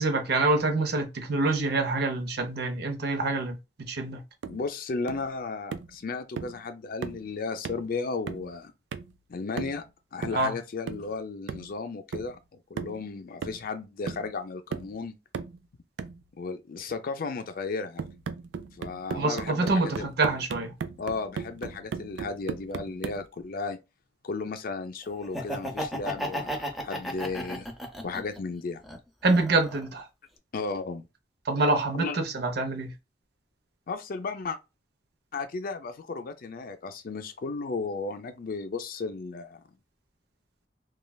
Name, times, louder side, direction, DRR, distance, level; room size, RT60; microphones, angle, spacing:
voice 1, 0.0-4.2 10.3-10.5 19.1-20.7 29.2-30.1 31.5-32.9, right 3 dB, 60° right, 0.7 m, -26 dB
sound 1, 4.4-4.6 5.1-5.3 5.7-6.0 6.4-6.6 7.0-7.3 7.6-7.9 8.3-8.5 8.9-9.2 9.6-9.9 10.2-10.5 10.9-11.1 11.5-11.7 12.1-12.4 12.8-13.0 13.4-13.8 14.1-14.3 14.7-15.0 15.3-15.6 16.0-16.2 18.0-23.3, right 5 dB, 80° right, 0.4 m, -37 dB
voice 2, 4.5-8.7 9.3-9.8 10.1-15.1 16.4-18.0 18.8-20.1 21.0-23.8 24.2-27.7 28.0-28.8 30.5-31.0 31.9-32.2 33.9-34.6 35.3-39.6, left 4 dB, 50° left, 0.5 m, -34 dB
Laughter, 25.2-28.4 28.8-29.9, equal, ahead, 0.6 m, -34 dB
3.2 x 2.3 x 2.2 m
head